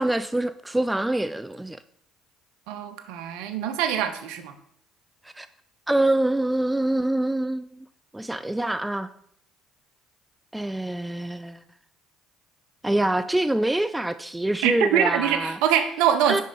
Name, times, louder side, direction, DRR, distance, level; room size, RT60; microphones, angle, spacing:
voice 1, 0.0-1.8 5.2-5.5 5.9-7.9 8.1-9.1 10.5-11.6 12.8-15.6 16.3-16.4, right 1 dB, 10° right, 12 dB, 0.3 m, -25 dB
voice 2, 2.7-4.5 14.6-16.4, right 9 dB, 75° right, 9 dB, 0.7 m, -24 dB
5.3 x 5.3 x 5.3 m, 0.70 s
hypercardioid pair, 65°, 0 cm